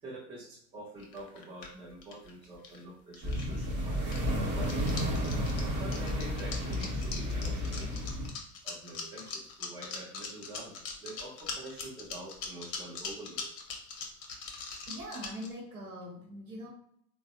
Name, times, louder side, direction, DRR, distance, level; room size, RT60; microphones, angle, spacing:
voice 1, 0.0-4.9 5.8-8.1 8.6-13.5, right 1 dB, 10° right, -4 dB, 0.4 m, -46 dB
sound 1, 1.0-2.8 3.1-3.7 3.9-15.5, left 5 dB, 35° left, 0.7 m, -41 dB
sound 2, 3.2-8.3, equal, 35° right, 1.0 m, -32 dB
voice 2, 14.7-16.7, equal, 75° right, -2 dB, 0.9 m, -43 dB
3.3 x 2.0 x 2.4 m, 0.72 s
figure-of-eight pair, 85°, 44 cm